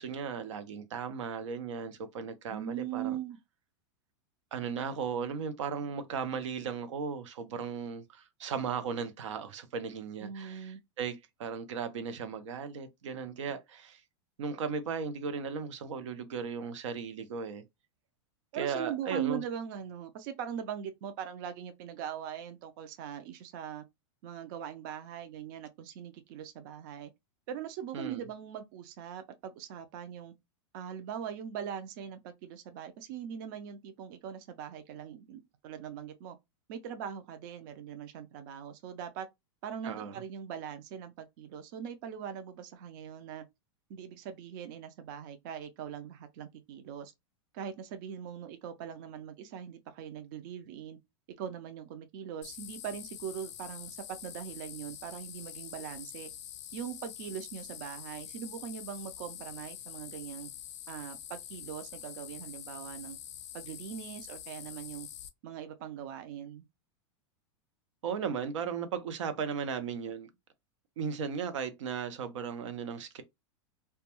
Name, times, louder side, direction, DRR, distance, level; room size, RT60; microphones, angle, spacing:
voice 1, 0.0-3.2 4.5-14.0 14.4-17.6 18.5-19.4 27.9-28.2 39.8-40.2 68.0-70.3 71.0-73.2, right 6 dB, 90° right, 0.6 m, -36 dB
voice 2, 2.5-3.4 10.2-10.8 18.5-23.8 24.2-27.1 27.5-30.3 30.7-36.4 36.7-39.3 39.6-43.4 43.9-47.1 47.5-51.0 51.4-56.3 56.7-60.5 60.9-63.2 63.5-65.1 65.4-66.7, right 9 dB, 45° right, 0.4 m, -41 dB
sound 1, 52.4-65.3, left 11 dB, 80° left, 0.5 m, -46 dB
2.2 x 2.2 x 2.9 m
supercardioid pair, 160°, 15 cm